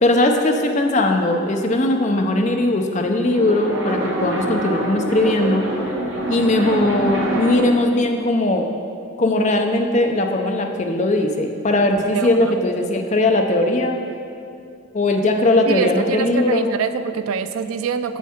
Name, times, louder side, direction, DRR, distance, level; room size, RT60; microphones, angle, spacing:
voice 1, 0.0-5.6 6.3-8.7 9.2-14.0 14.9-16.7, left 1 dB, 35° left, 3 dB, 0.5 m, -19 dB
sound 1, 3.1-7.8, right 1 dB, 60° right, 1.3 m, -25 dB
voice 2, 12.1-12.6 15.7-18.2, right 6 dB, 85° right, 11 dB, 0.4 m, -25 dB
7.3 x 7.1 x 4.3 m, 2.4 s
head